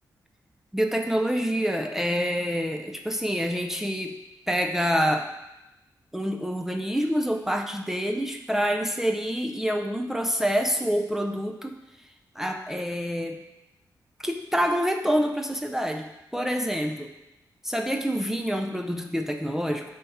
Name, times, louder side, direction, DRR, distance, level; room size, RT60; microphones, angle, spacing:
voice 1, 0.7-4.2 4.5-5.3 6.1-11.8 12.4-13.4 14.2-17.1 17.6-19.8, equal, 5° right, 3 dB, 0.5 m, -27 dB
7.6 x 3.5 x 5.5 m, 0.94 s
wide cardioid pair, 115°, 7 cm